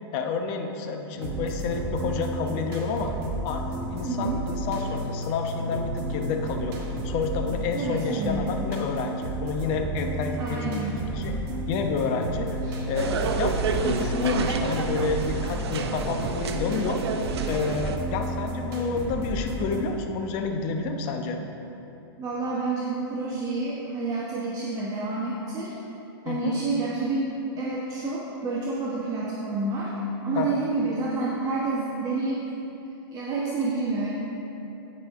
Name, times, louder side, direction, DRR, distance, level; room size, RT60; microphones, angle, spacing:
voice 1, 0.1-3.1 3.4-6.8 7.0-11.3 11.7-12.6 12.9-13.5 13.8-17.0 17.5-21.4 26.2-26.5 30.4-30.6, left 5 dB, 40° left, 4 dB, 0.9 m, -29 dB
sound 1, 1.1-19.8, right 1 dB, 50° right, 2.3 m, -32 dB
voice 2, 4.0-4.4 7.7-8.5 10.4-11.0 12.6-12.8 22.2-25.7 26.2-29.9 30.2-32.4 33.1-34.1, right 3 dB, 25° right, -5 dB, 1.1 m, -29 dB
sound 2, 13.0-18.0, right 5 dB, 80° right, 0.7 m, -29 dB
16.5 x 5.5 x 3.7 m, 3.0 s
hypercardioid pair, 135°, 14 cm